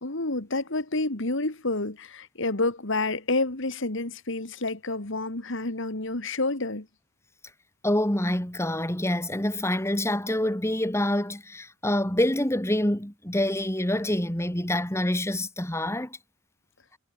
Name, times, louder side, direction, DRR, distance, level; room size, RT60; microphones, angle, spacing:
voice 1, 0.0-6.9, left 2 dB, 65° left, 2.4 m, -29 dB
voice 2, 7.8-16.2, left 1 dB, 15° left, 3.3 m, -26 dB
head